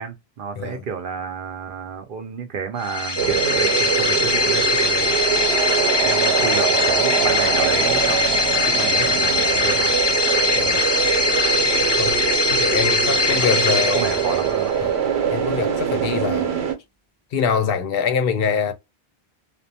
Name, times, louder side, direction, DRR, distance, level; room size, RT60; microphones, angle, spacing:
voice 1, 0.0-5.1 6.0-10.0 12.9-14.7, right 6 dB, 60° right, 0.7 m, -31 dB
sound 1, 2.8-14.7, left 3 dB, 35° left, 0.5 m, -21 dB
sound 2, 3.2-16.7, right 8 dB, 85° right, 1.0 m, -23 dB
voice 2, 12.4-14.2 14.8-14.9 15.3-16.5 17.3-18.7, left 6 dB, 70° left, 0.7 m, -24 dB
2.5 x 2.1 x 2.7 m
omnidirectional pair, 1.1 m